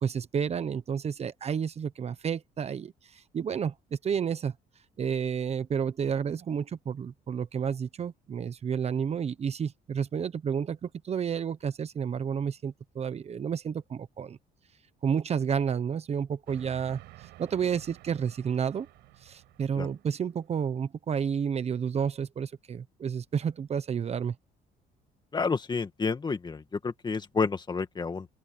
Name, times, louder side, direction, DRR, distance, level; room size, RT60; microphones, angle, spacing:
voice 1, 0.0-4.5 5.0-14.4 15.0-18.9 19.2-24.3, right 7 dB, 40° right, 1.0 m, -31 dB
Train, 16.5-20.4, right 18 dB, 90° right, 6.9 m, -52 dB
voice 2, 25.3-28.3, left 4 dB, 25° left, 2.1 m, -30 dB
open air
cardioid pair, 110°, 17 cm